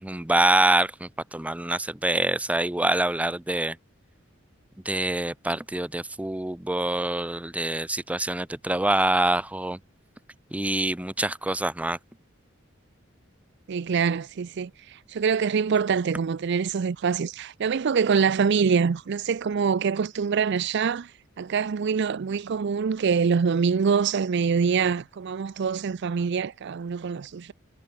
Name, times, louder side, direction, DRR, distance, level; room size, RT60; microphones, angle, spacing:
voice 1, 0.0-3.8 4.9-9.8 10.5-12.0, right 1 dB, 5° right, 0.5 m, -25 dB
voice 2, 13.7-14.7 15.1-21.1 21.4-27.5, right 6 dB, 60° right, 0.4 m, -24 dB
head